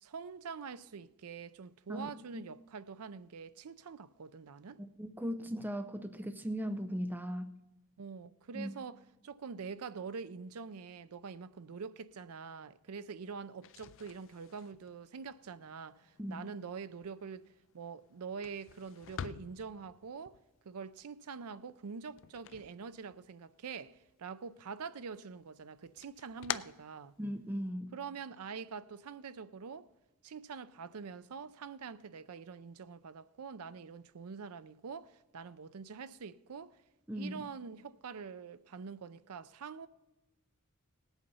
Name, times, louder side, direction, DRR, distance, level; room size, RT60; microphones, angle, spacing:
voice 1, 0.0-4.8 8.0-17.5 17.7-20.4 20.7-27.1 27.9-29.9 30.2-36.8 37.1-39.9, right 5 dB, 75° right, 0.5 m, -45 dB
voice 2, 1.9-2.4 5.0-7.5 8.5-8.7 16.2-16.5 27.2-27.9 37.1-37.5, equal, 10° right, 0.6 m, -38 dB
sound 1, 13.5-23.5 23.8-24.7 25.1-27.7, left 9 dB, 60° left, 0.4 m, -48 dB
18.0 x 8.1 x 5.5 m
head